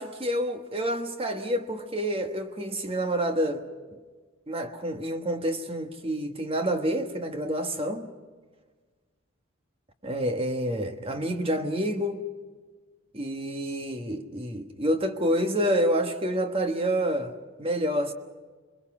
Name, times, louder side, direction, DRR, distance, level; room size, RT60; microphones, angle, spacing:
voice 1, 0.0-3.6 4.5-8.1 10.0-12.2 13.1-17.3 17.6-18.1, equal, 25° right, 1.3 m, -28 dB
27.0 x 21.5 x 6.1 m
head